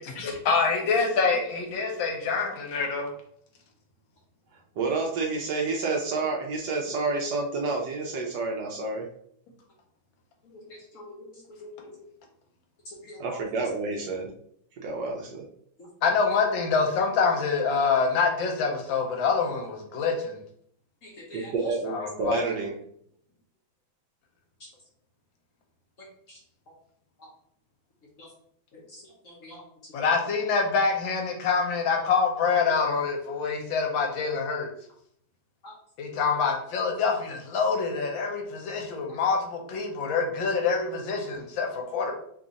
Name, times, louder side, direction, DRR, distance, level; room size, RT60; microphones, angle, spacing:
voice 1, 0.2-3.1 16.0-20.4 21.9-22.4 29.9-34.7 36.0-42.1, left 5 dB, 75° left, 2 dB, 1.4 m, -26 dB
voice 2, 4.8-9.1 13.2-14.3 14.8-15.4 21.3-22.7, right 3 dB, 70° right, 0 dB, 1.0 m, -29 dB
voice 3, 10.4-12.0 12.8-13.4 15.8-15.9 21.0-22.1 24.6-24.7 26.0-26.4 26.7-26.8 27.2-27.3 28.2-28.3 28.7-30.2 35.6-35.7 36.1-36.2, left 1 dB, 60° left, -3 dB, 0.9 m, -46 dB
3.3 x 2.4 x 3.9 m, 0.66 s
omnidirectional pair, 2.2 m